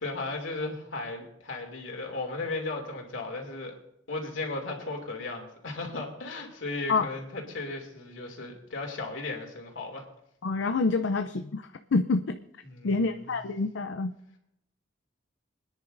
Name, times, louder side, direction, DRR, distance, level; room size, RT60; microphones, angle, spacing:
voice 1, 0.0-3.7 4.1-10.0 12.6-13.3, left 3 dB, 90° left, 1 dB, 2.7 m, -36 dB
voice 2, 10.4-12.4 12.8-14.1, left 3 dB, 70° left, 9 dB, 0.5 m, -27 dB
26.0 x 10.0 x 2.6 m, 0.79 s
head